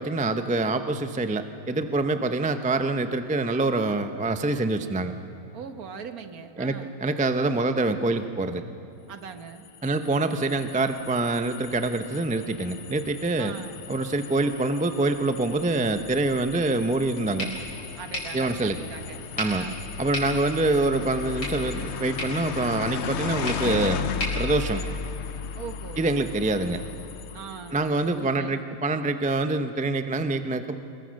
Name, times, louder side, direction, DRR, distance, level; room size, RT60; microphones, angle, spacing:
voice 1, 0.0-5.1 6.6-8.6 9.8-13.6 13.9-17.5 18.3-18.8 19.4-19.7 20.0-24.0 24.4-24.8 26.0-26.8 27.7-30.8, right 2 dB, 10° right, 8 dB, 0.3 m, -25 dB
voice 2, 5.5-7.0 9.1-9.7 13.4-13.8 18.0-19.9 25.6-26.1 27.3-27.8 28.2-28.7, right 6 dB, 65° right, 8 dB, 1.6 m, -40 dB
sound 1, 9.5-28.0, left 7 dB, 60° left, 0.7 m, -36 dB
sound 2, 17.4-25.4, left 1 dB, 85° left, 5.7 m, -38 dB
26.5 x 22.0 x 6.5 m, 2.8 s
omnidirectional pair, 1.7 m